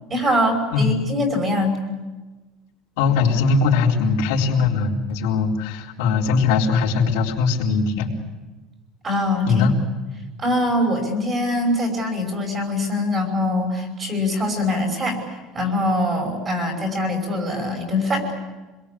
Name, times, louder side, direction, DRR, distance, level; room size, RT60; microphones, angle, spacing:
voice 1, 0.1-1.8 9.0-9.7 10.4-15.2 15.5-18.4, left 1 dB, 20° right, 4 dB, 5.5 m, -23 dB
voice 2, 3.0-8.1 9.5-9.7, left 4 dB, 85° left, -2 dB, 4.2 m, -20 dB
27.0 x 22.0 x 8.6 m, 1.2 s
cardioid pair, 175°, 0 cm